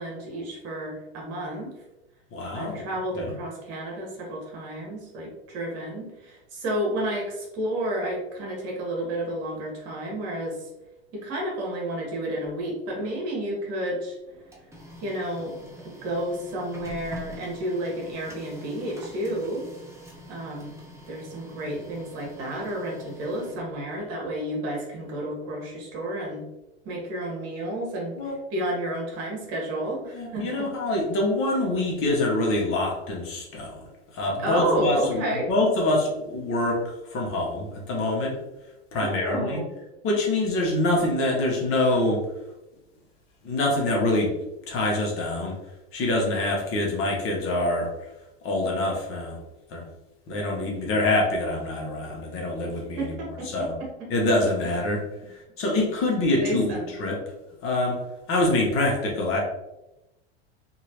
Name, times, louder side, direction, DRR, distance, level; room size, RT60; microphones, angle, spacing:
voice 1, 0.0-1.7 2.5-10.7 11.1-14.2 15.0-15.6 15.8-19.7 20.3-20.8 21.1-26.4 26.8-28.2 28.5-30.7 34.4-35.5 39.0-39.7 52.9-54.3 56.4-57.0, right 1 dB, 45° right, -2 dB, 1.4 m, -31 dB
voice 2, 2.3-2.8 3.2-3.3 28.2-28.3 30.1-33.8 34.1-36.8 37.1-38.4 38.9-39.6 40.0-42.2 43.4-44.3 44.7-45.6 45.9-47.9 48.4-49.4 49.7-49.8 50.3-53.7 54.1-55.0 55.3-57.2 57.6-58.0 58.3-59.4, left 2 dB, 40° left, -1 dB, 1.0 m, -25 dB
Printer, 14.2-24.0, equal, 10° right, 0.7 m, -45 dB
3.0 x 2.8 x 2.9 m, 0.96 s
hypercardioid pair, 105°, 33 cm